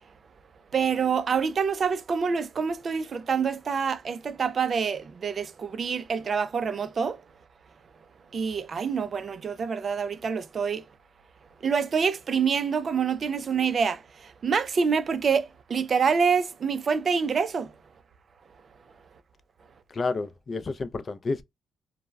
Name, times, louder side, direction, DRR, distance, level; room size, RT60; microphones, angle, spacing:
voice 1, 0.7-7.2 8.3-10.8 11.6-17.7, right 6 dB, 45° right, 0.3 m, -26 dB
voice 2, 19.9-21.4, left 3 dB, 35° left, 0.4 m, -30 dB
2.2 x 2.0 x 3.2 m
cardioid pair, 90°, 0 cm